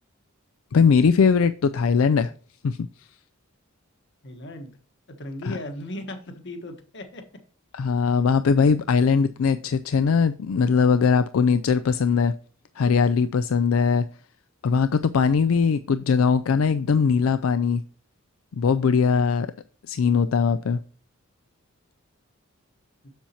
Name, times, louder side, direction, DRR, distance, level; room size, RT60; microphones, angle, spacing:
voice 1, 0.7-2.3 2.6-2.9 5.4-5.6 7.7-12.3 12.8-14.1 14.6-17.8 18.5-19.5 19.9-20.8, left 5 dB, 85° left, 11 dB, 0.4 m, -20 dB
voice 2, 4.2-4.7 5.2-7.2, left 1 dB, 60° left, 6 dB, 1.3 m, -36 dB
7.3 x 7.1 x 2.9 m, 0.41 s
head